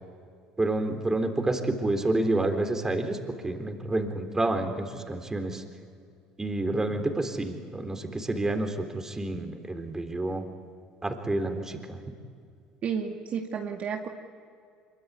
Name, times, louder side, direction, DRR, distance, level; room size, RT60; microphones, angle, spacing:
voice 1, 0.6-3.2 3.4-5.6 6.4-10.4 11.0-12.0, right 2 dB, 15° right, 6 dB, 3.7 m, -29 dB
voice 2, 12.8-14.1, right 6 dB, 50° right, 2 dB, 2.2 m, -31 dB
25.0 x 23.0 x 9.6 m, 2.2 s
hypercardioid pair, 80°, 3 cm